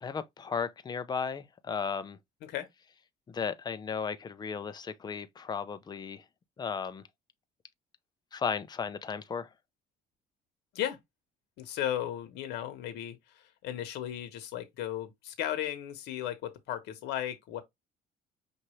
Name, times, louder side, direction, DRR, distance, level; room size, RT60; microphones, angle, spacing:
voice 1, 0.0-2.2 3.3-6.2 6.6-7.0 8.3-9.5, left 6 dB, 25° left, 0.6 m, -35 dB
voice 2, 11.6-17.6, left 11 dB, 85° left, 1.1 m, -35 dB
5.6 x 2.6 x 3.1 m
cardioid pair, 110°, 17 cm